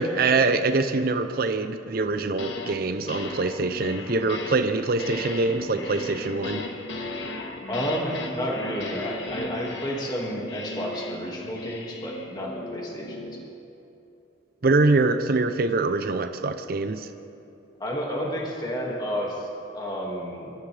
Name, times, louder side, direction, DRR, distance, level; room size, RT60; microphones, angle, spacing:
voice 1, 0.0-6.7 14.6-17.1, right 3 dB, 50° right, 8 dB, 0.6 m, -24 dB
sound 1, 2.1-2.8 3.1-13.5, left 2 dB, 70° left, 1.3 m, -36 dB
voice 2, 7.7-13.3 17.8-19.5 19.7-20.5, equal, 20° left, -2 dB, 2.0 m, -31 dB
26.0 x 13.0 x 3.4 m, 2.8 s
head